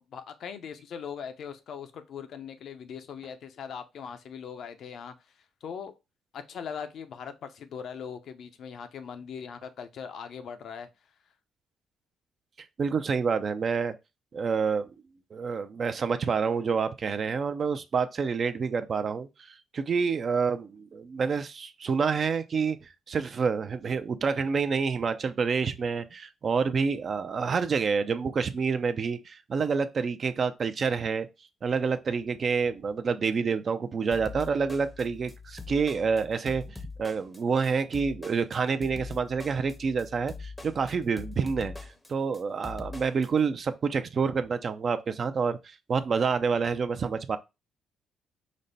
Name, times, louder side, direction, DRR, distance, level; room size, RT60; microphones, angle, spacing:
voice 1, 0.1-5.1 5.6-5.9 6.3-10.9, left 7 dB, 65° left, 0.6 m, -40 dB
voice 2, 12.8-13.9 14.3-14.9 15.3-31.3 31.6-41.7 42.1-47.4, right 5 dB, 45° right, 0.5 m, -28 dB
sound 1, 34.1-43.3, left 4 dB, 15° left, 0.7 m, -42 dB
5.2 x 2.2 x 4.0 m
cardioid pair, 90°, 0 cm